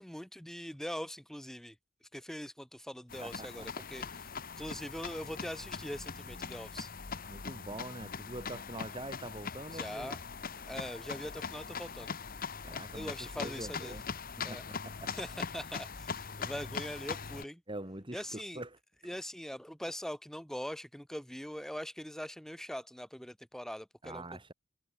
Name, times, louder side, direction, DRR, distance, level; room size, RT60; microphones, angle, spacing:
voice 1, 0.0-6.9 9.7-10.2 10.7-12.1 12.9-14.0 14.4-14.6 15.1-17.6 18.1-18.6 19.0-24.2, equal, ahead, 0.8 m, -42 dB
sound 1, 3.1-17.4, left 5 dB, 45° left, 1.3 m, -41 dB
voice 2, 7.3-10.2 12.6-14.0 14.5-15.1 17.7-18.7 24.0-24.5, right 1 dB, 25° right, 3.7 m, -44 dB
head